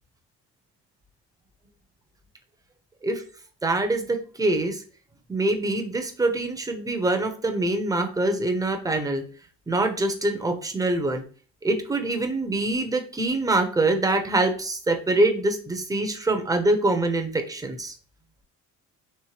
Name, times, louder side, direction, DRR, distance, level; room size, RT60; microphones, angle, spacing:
voice 1, 3.6-4.8 5.3-9.2 9.7-11.2 11.6-17.9, right 2 dB, 10° right, 6 dB, 0.7 m, -24 dB
4.4 x 3.1 x 3.2 m, 0.41 s
cardioid pair, 110°, 32 cm